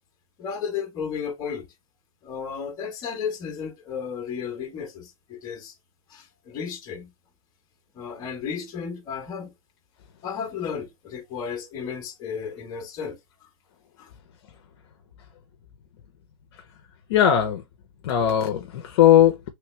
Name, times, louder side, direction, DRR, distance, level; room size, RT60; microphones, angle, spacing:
voice 1, 0.4-1.7 2.2-5.7 6.1-7.1 7.9-9.5 10.2-13.2 14.0-14.1, left 6 dB, 20° left, 1.0 m, -33 dB
voice 2, 17.1-17.6 18.0-19.5, left 10 dB, 50° left, 0.7 m, -18 dB
3.2 x 3.1 x 3.1 m
supercardioid pair, 165°, 18 cm